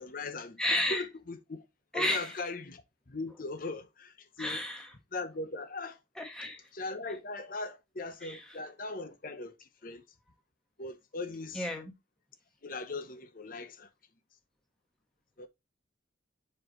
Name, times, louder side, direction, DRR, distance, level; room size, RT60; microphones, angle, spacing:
voice 1, 0.0-0.6 0.9-1.6 1.9-4.6 5.1-6.0 6.7-10.0 10.8-11.7 12.6-13.9 15.4-15.5, left 3 dB, 45° left, 0.8 m, -39 dB
voice 2, 0.6-1.0 1.9-2.3 4.4-4.9 6.2-6.6 8.2-8.4 11.5-11.9, left 1 dB, 5° left, 1.3 m, -32 dB
7.3 x 4.4 x 3.0 m
head